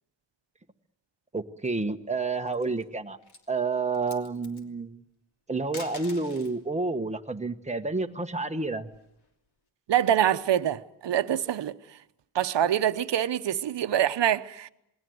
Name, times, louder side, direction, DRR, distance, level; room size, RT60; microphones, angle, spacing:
voice 1, 1.3-3.2 3.5-5.0 5.5-8.9, right 3 dB, 15° right, 1.1 m, -29 dB
sound 1, 2.3-2.8 3.2-3.5 3.9-4.6 5.6-6.6 8.1-9.3, left 4 dB, 55° left, 3.1 m, -46 dB
voice 2, 9.9-11.7 12.3-14.7, right 10 dB, 65° right, 1.0 m, -25 dB
28.0 x 21.0 x 7.8 m
wide cardioid pair, 140°, 46 cm